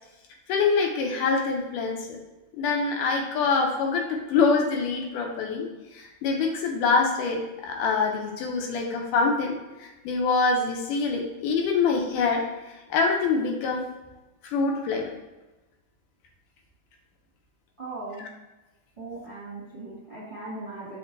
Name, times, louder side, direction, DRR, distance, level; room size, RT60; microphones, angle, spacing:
voice 1, 0.5-2.1 2.6-5.7 5.9-12.4 12.9-13.8 14.4-15.1, left 4 dB, 80° left, 2 dB, 2.4 m, -25 dB
voice 2, 17.8-18.2 19.0-21.0, right 2 dB, 30° right, -8 dB, 1.0 m, -38 dB
6.5 x 5.0 x 3.2 m, 1.1 s
omnidirectional pair, 3.7 m